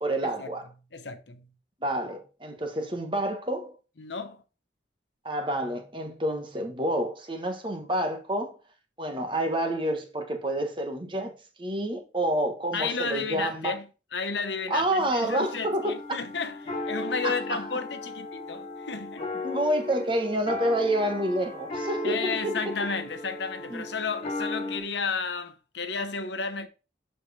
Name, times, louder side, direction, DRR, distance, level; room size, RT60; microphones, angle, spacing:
voice 1, 0.0-0.7 1.8-3.7 5.2-8.6 9.0-13.8 14.7-16.0 17.2-17.6 19.4-22.5 23.7-23.8, right 1 dB, 25° right, 1.3 m, -28 dB
voice 2, 0.9-1.5 4.0-4.4 12.7-19.2 22.0-26.7, left 5 dB, 80° left, 1.1 m, -32 dB
sound 1, 15.3-24.8, left 2 dB, 35° left, 2.8 m, -36 dB
12.0 x 4.5 x 3.4 m
head